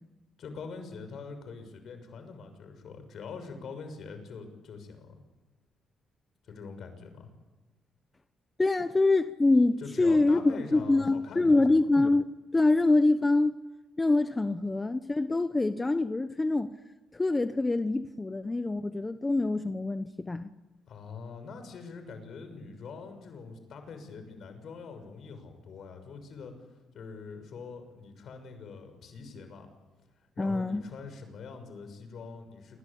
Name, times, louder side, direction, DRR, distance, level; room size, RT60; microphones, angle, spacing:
voice 1, 0.4-5.2 6.4-7.3 9.8-11.9 20.9-26.5 26.9-29.7 30.4-32.8, left 4 dB, 65° left, 6.4 m, -44 dB
voice 2, 8.6-12.3 12.5-13.6 14.0-16.7 17.1-20.5 30.4-30.8, left 2 dB, 20° left, 1.0 m, -25 dB
28.0 x 24.5 x 8.6 m
cardioid pair, 90°, 0 cm